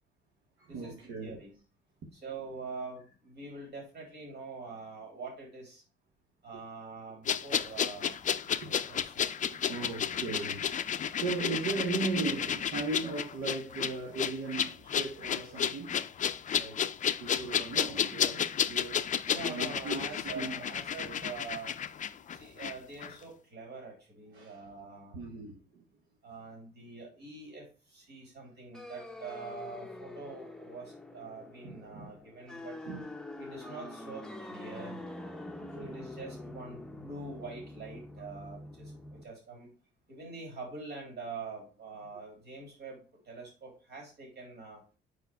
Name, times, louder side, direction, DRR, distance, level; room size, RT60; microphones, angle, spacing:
voice 1, 0.6-1.4 2.0-2.1 6.5-6.6 8.0-8.2 8.6-15.9 16.5-16.8 17.2-20.7 21.0-21.2 24.3-24.7 25.1-25.8 31.6-32.2 32.8-33.1 35.6-36.0 38.3-38.5, right 4 dB, 85° right, 1.0 m, -38 dB
voice 2, 1.2-1.5 2.1-5.8 6.4-8.2 8.4-9.2 19.3-21.7 22.3-25.2 26.2-32.8 33.4-35.0 35.8-39.7 40.1-44.8, right 4 dB, 55° right, 3.1 m, -45 dB
sound 1, 7.3-22.7 23.0-23.1, left 8 dB, 40° left, 0.4 m, -32 dB
sound 2, 28.7-39.2, left 1 dB, 5° left, 0.7 m, -45 dB
4.9 x 4.6 x 4.5 m
cardioid pair, 90°, 20 cm